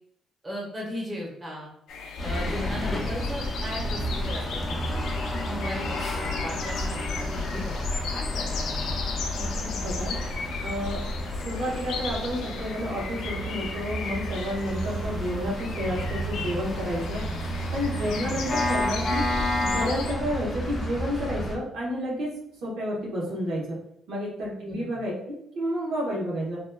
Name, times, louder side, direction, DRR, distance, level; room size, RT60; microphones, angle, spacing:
voice 1, 0.4-1.7 2.2-5.1 5.4-9.0 18.1-18.6 24.6-25.0, left 1 dB, 25° right, -4 dB, 1.1 m, -37 dB
sound 1, 1.9-20.1, left 5 dB, 85° left, 0.4 m, -37 dB
sound 2, 2.2-21.6, left 1 dB, 35° left, 0.7 m, -31 dB
oriental sample, 4.6-22.2, right 1 dB, 5° right, 0.9 m, -47 dB
voice 2, 9.4-10.1 10.6-11.0 11.4-17.2 17.7-19.3 19.6-22.3 22.6-23.8 24.1-26.6, equal, 80° right, -5 dB, 1.0 m, -30 dB
2.8 x 2.2 x 2.2 m, 0.74 s
cardioid pair, 90°, 0 cm